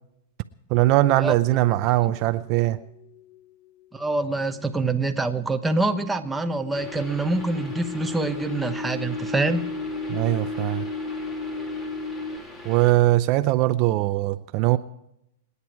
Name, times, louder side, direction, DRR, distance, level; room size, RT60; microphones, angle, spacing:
voice 1, 0.7-2.8 10.1-10.9 12.6-14.8, right 16 dB, 40° right, 0.6 m, -21 dB
sound 1, 0.8-3.4 5.7-12.4, left 3 dB, 35° left, 0.9 m, -35 dB
voice 2, 3.9-9.7, right 2 dB, 5° right, 1.1 m, -25 dB
sound 2, 6.7-12.9, left 1 dB, 20° left, 3.2 m, -42 dB
28.0 x 9.8 x 4.7 m
hypercardioid pair, 135°, 0 cm